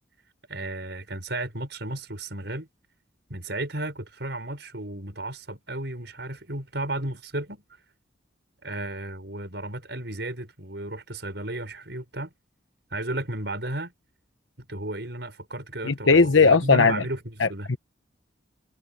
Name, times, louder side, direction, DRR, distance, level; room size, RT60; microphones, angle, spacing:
voice 1, 0.5-2.7 3.3-7.6 8.6-12.3 12.9-13.9 14.6-17.7, right 1 dB, 65° right, 5.5 m, -34 dB
voice 2, 15.8-17.0 17.4-17.8, left 4 dB, 80° left, 1.0 m, -18 dB
head